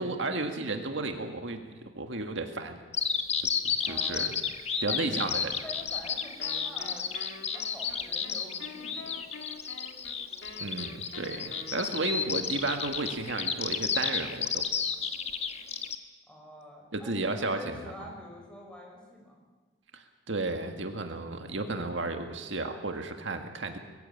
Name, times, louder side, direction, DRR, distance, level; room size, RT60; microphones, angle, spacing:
voice 1, 0.0-1.7 2.0-2.8 3.4-4.3 4.8-5.5 10.6-14.7 16.9-18.1 19.9-23.8, right 2 dB, 75° right, 5 dB, 1.8 m, -33 dB
Bird vocalization bird call bird song, 2.9-16.0, left 6 dB, 35° left, 1.3 m, -32 dB
voice 2, 3.8-4.3 4.8-7.2 7.5-9.2 16.3-19.4, equal, 5° left, -1 dB, 5.6 m, -46 dB
Wind instrument woodwind instrument, 6.4-12.4, left 3 dB, 80° left, 2.1 m, -47 dB
22.0 x 15.5 x 8.6 m, 1.3 s
head